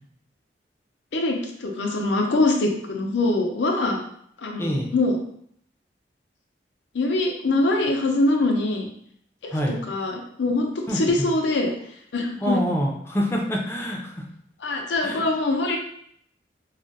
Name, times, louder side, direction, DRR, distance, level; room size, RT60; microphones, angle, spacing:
voice 1, 1.1-4.0 4.4-5.2 6.9-8.9 9.4-9.5 9.9-10.7 10.9-11.7 12.1-12.6 14.6-15.8, left 2 dB, 85° left, 2 dB, 0.5 m, -23 dB
voice 2, 4.6-4.9 9.5-9.8 10.9-11.3 12.4-14.2 15.0-15.2, equal, 15° left, 0 dB, 0.4 m, -26 dB
2.4 x 2.1 x 3.9 m, 0.67 s
head